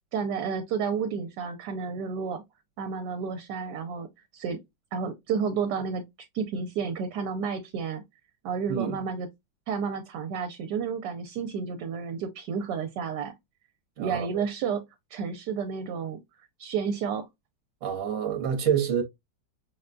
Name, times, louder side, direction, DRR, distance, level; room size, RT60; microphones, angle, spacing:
voice 1, 0.1-2.4 2.8-4.1 4.3-4.6 4.9-6.0 6.3-8.0 8.4-9.3 9.7-13.3 14.0-14.8 15.1-16.2 16.6-17.3, right 6 dB, 80° right, 1.2 m, -31 dB
voice 2, 8.7-9.0 14.0-14.4 17.8-19.0, right 8 dB, 50° right, 1.2 m, -28 dB
5.9 x 2.2 x 2.4 m
omnidirectional pair, 1.9 m